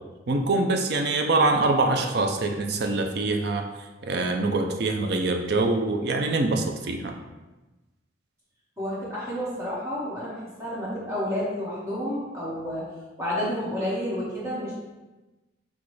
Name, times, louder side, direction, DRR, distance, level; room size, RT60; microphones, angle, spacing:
voice 1, 0.3-3.7 4.0-7.1, right 2 dB, 55° right, 4 dB, 0.5 m, -24 dB
voice 2, 8.8-12.8 13.2-14.7, equal, 15° right, -8 dB, 1.4 m, -30 dB
6.1 x 2.4 x 3.2 m, 1.1 s
head